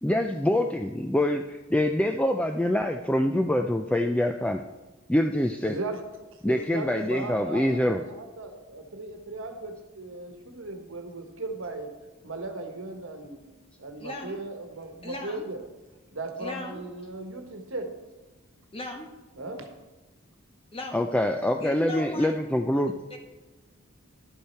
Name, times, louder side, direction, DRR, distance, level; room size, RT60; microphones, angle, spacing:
voice 1, 0.0-4.6 5.1-5.8 6.4-8.0 20.9-22.9, left 1 dB, 5° left, 5 dB, 0.3 m, -25 dB
voice 2, 5.6-6.0 6.3-11.9 12.2-13.4 13.8-15.6 16.1-17.9 19.4-19.7, right 2 dB, 65° right, 5 dB, 1.4 m, -37 dB
voice 3, 14.0-14.4 15.0-15.5 16.4-16.8 18.7-19.1 20.7-21.0 21.6-22.3 23.1-23.2, left 2 dB, 25° left, 3 dB, 1.3 m, -37 dB
11.5 x 8.5 x 4.4 m, 1.2 s
head